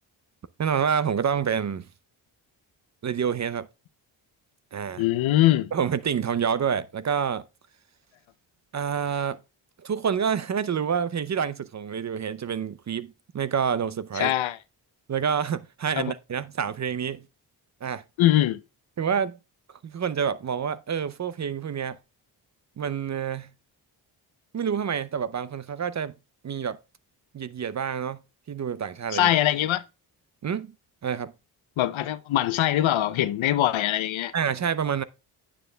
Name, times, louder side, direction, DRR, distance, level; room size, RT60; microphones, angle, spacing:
voice 1, 0.6-1.9 3.0-3.7 4.7-5.0 5.7-7.4 8.7-9.4 9.8-14.3 15.1-17.3 17.8-18.0 19.0-19.4 19.8-22.0 22.8-23.5 24.5-26.1 26.4-26.8 27.3-28.2 28.5-29.3 30.4-30.7 31.0-31.3 34.3-35.0, right 7 dB, 35° right, 0.5 m, -28 dB
voice 2, 5.0-5.7 14.2-14.6 16.0-16.1 18.2-18.6 29.1-29.8 31.8-34.3, left 13 dB, 70° left, 0.6 m, -22 dB
9.1 x 8.7 x 2.2 m
supercardioid pair, 50°, 50 cm